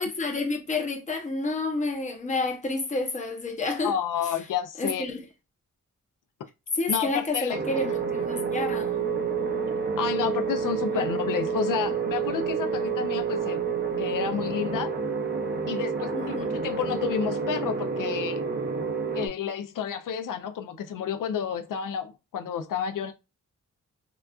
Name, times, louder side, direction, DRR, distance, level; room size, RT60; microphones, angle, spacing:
voice 1, 0.0-4.0 4.8-5.2 6.7-9.1 10.9-11.1 16.1-16.6, left 3 dB, 25° left, 0.6 m, -29 dB
voice 2, 3.8-5.1 6.9-7.9 10.0-13.6 14.0-15.0 15.7-16.3 16.6-18.4 19.1-23.1, left 8 dB, 85° left, 0.5 m, -30 dB
sound 1, 7.5-19.3, right 5 dB, 35° right, 0.5 m, -29 dB
3.8 x 2.3 x 2.3 m
wide cardioid pair, 170°, 31 cm